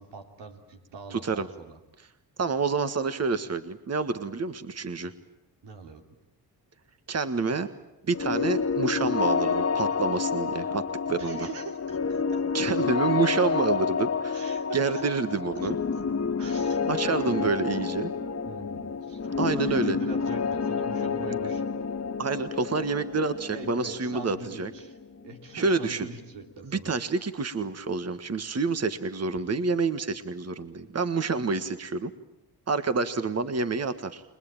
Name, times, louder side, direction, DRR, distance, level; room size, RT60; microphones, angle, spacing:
voice 1, 0.0-1.8 5.6-6.0 11.2-12.4 14.3-15.1 15.5-15.7 16.4-17.5 18.4-21.6 23.5-25.0 25.2-27.0 29.5-29.6, right 4 dB, 85° right, 3 dB, 3.3 m, -42 dB
voice 2, 1.1-1.5 2.4-5.1 7.1-7.7 8.1-11.5 12.5-15.8 16.9-18.1 19.4-20.0 22.2-24.7 25.5-26.1 26.6-32.1 32.7-34.2, right 4 dB, 35° right, 10 dB, 1.6 m, -28 dB
sound 1, 8.1-25.8, left 5 dB, 35° left, 1.9 m, -29 dB
29.5 x 21.0 x 9.0 m, 0.90 s
cardioid pair, 65°, 41 cm